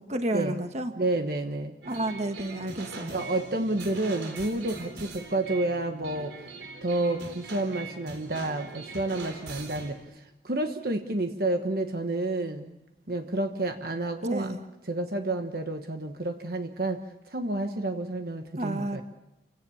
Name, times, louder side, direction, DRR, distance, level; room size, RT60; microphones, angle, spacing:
voice 1, 0.0-0.9 1.8-3.2 14.2-14.6 18.6-19.0, right 1 dB, 40° right, 7 dB, 1.5 m, -31 dB
voice 2, 0.9-1.8 3.1-6.4 6.8-12.8 13.1-14.5 14.9-19.0, right 2 dB, 55° right, 6 dB, 1.3 m, -30 dB
sound 1, 1.8-10.0, right 3 dB, 80° right, 4.1 m, -42 dB
29.0 x 17.0 x 7.2 m, 0.95 s
head